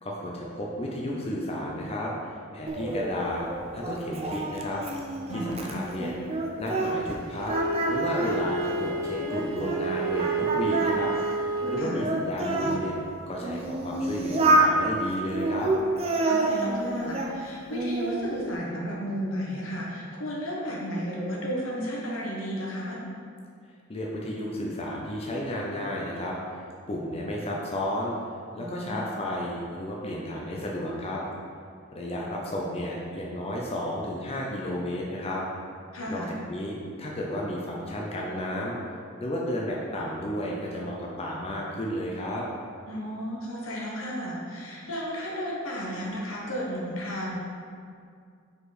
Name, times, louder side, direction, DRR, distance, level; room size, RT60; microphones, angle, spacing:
voice 1, 0.0-3.5 3.7-4.8 5.3-7.6 7.9-11.1 11.7-12.9 13.3-15.7 23.9-26.4 26.9-28.1 28.6-31.2 31.9-35.4 36.1-38.8 39.2-42.5, equal, 30° left, -3 dB, 0.6 m, -32 dB
Singing, 2.7-7.2 7.5-9.8 10.2-12.8 13.4-14.7 15.3-17.3 17.7-18.3, right 2 dB, 30° right, 0.6 m, -28 dB
voice 2, 5.3-5.8 11.8-12.0 16.2-23.0 28.6-29.0 35.9-36.3 42.9-47.3, equal, 80° left, -3 dB, 1.3 m, -33 dB
Wind instrument woodwind instrument, 7.5-11.9, right 3 dB, 85° right, 0.6 m, -30 dB
5.2 x 4.9 x 4.1 m, 2.3 s
head